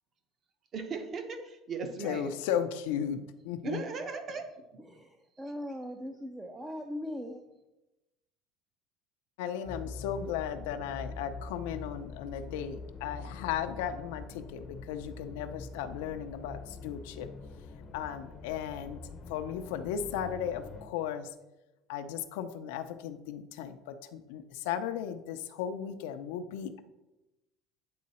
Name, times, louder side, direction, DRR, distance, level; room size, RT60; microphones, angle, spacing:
voice 1, 0.7-2.3 3.6-4.4, right 4 dB, 35° right, 6 dB, 0.9 m, -37 dB
voice 2, 2.0-3.2 3.5-3.8 9.4-17.3 17.9-19.0 19.3-21.3 21.9-26.8, left 9 dB, 90° left, 7 dB, 0.5 m, -36 dB
voice 3, 4.8-7.4, left 1 dB, 10° right, 5 dB, 0.4 m, -40 dB
sound 1, 9.6-20.9, left 4 dB, 35° left, 0.6 m, -44 dB
8.5 x 3.8 x 4.2 m, 0.97 s
cardioid pair, 145°, 0 cm